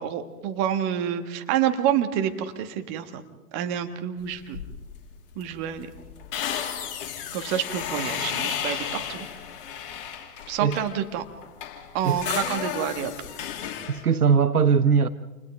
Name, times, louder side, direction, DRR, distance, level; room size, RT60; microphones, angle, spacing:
voice 1, 0.0-3.2 3.5-4.6 5.4-5.9 7.3-9.3 10.5-11.2 11.9-13.1, right 9 dB, 30° right, 1.8 m, -28 dB
sound 1, 4.5-5.0 5.3-5.4 5.7-11.0 11.4-14.0, left 9 dB, 35° left, 3.0 m, -33 dB
voice 2, 13.9-15.1, right 6 dB, 75° right, 1.0 m, -20 dB
30.0 x 28.5 x 3.6 m
figure-of-eight pair, 115°, 45 cm